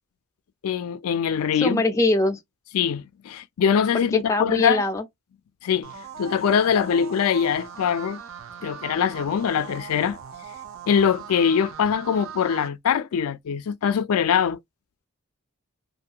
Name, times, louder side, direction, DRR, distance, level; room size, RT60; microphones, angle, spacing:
voice 1, 0.6-1.8 2.7-4.8 5.6-5.9 6.2-8.2 8.6-10.2 10.9-14.6, left 7 dB, 85° left, 0.4 m, -23 dB
voice 2, 1.6-2.4 3.9-5.0, left 2 dB, 15° left, 0.4 m, -23 dB
sound 1, 5.8-12.7, right 8 dB, 60° right, 0.5 m, -40 dB
2.5 x 2.2 x 2.7 m
head